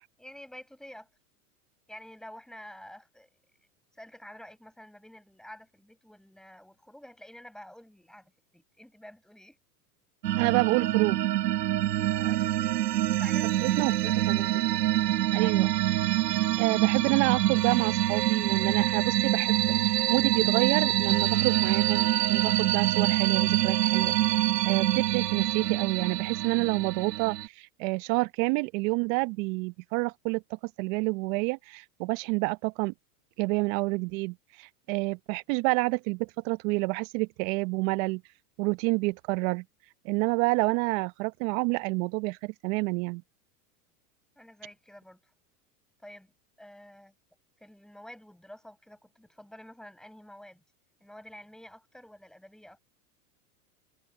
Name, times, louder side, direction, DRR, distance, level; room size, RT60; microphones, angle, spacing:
voice 1, 0.2-1.1 1.9-3.3 3.9-9.6 12.0-14.2 15.3-15.7 44.4-45.3 46.0-46.3 46.6-47.1 47.6-50.6 51.0-52.8, left 1 dB, ahead, 7.0 m, -49 dB
sound 1, 10.2-27.5, right 14 dB, 85° right, 1.3 m, -26 dB
voice 2, 10.4-11.2 13.6-14.8 15.3-15.7 16.6-32.9 33.4-38.2 38.6-39.6 40.0-43.2, right 28 dB, 55° right, 1.1 m, -28 dB
hypercardioid pair, 115°, 47 cm